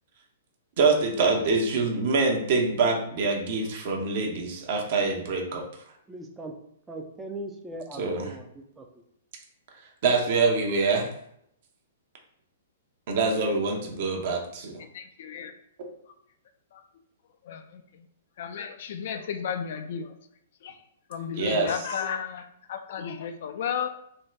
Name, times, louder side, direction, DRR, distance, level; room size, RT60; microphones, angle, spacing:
voice 1, 0.8-5.6 7.9-8.4 10.0-11.1 13.1-14.8 15.8-15.9 21.4-21.7, right 3 dB, 55° right, 1 dB, 0.7 m, -25 dB
voice 2, 6.1-6.5 6.9-8.4 8.8-8.9, right 1 dB, 10° right, 3 dB, 0.4 m, -39 dB
voice 3, 14.8-15.5 16.7-16.8 17.4-18.1 18.4-20.1 20.6-20.8 21.1-23.9, left 7 dB, 55° left, 7 dB, 0.3 m, -34 dB
2.6 x 2.2 x 3.2 m, 0.71 s
figure-of-eight pair, 115°, 0 cm